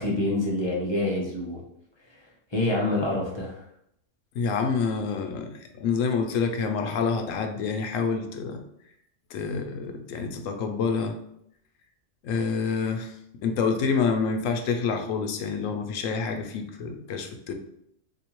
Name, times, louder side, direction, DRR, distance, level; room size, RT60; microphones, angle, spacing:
voice 1, 0.0-1.6 2.5-3.6, left 1 dB, 25° left, -4 dB, 0.7 m, -26 dB
voice 2, 4.3-8.6 9.3-11.2 12.2-13.1 13.4-17.5, left 5 dB, 90° left, 5 dB, 1.0 m, -27 dB
3.7 x 2.8 x 2.9 m, 0.74 s
omnidirectional pair, 1.3 m